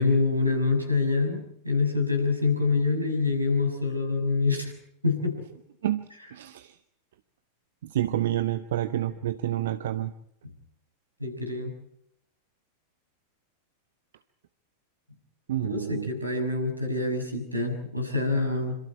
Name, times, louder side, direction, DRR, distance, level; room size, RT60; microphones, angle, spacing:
voice 1, 0.0-4.7 5.0-5.4 11.2-11.7 15.6-18.8, left 3 dB, 85° right, 6 dB, 6.2 m, -26 dB
voice 2, 6.3-6.8 7.8-10.1 15.5-16.1, right 12 dB, 60° right, 12 dB, 1.0 m, -28 dB
27.0 x 26.5 x 4.5 m, 0.75 s
figure-of-eight pair, 90°, 0 cm